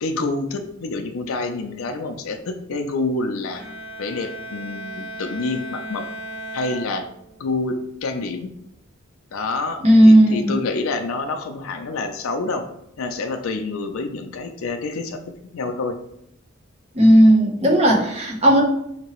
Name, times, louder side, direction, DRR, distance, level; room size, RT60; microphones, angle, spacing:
voice 1, 0.0-3.6 4.0-6.1 6.5-7.0 7.4-8.5 9.3-12.7 13.0-15.2 15.5-15.9, left 3 dB, 85° left, 6 dB, 0.5 m, -27 dB
Bowed string instrument, 3.5-7.5, right 1 dB, 10° right, 1.4 m, -36 dB
voice 2, 9.8-10.5 16.9-18.6, equal, 30° right, -1 dB, 0.8 m, -14 dB
5.3 x 2.9 x 3.0 m, 0.78 s
head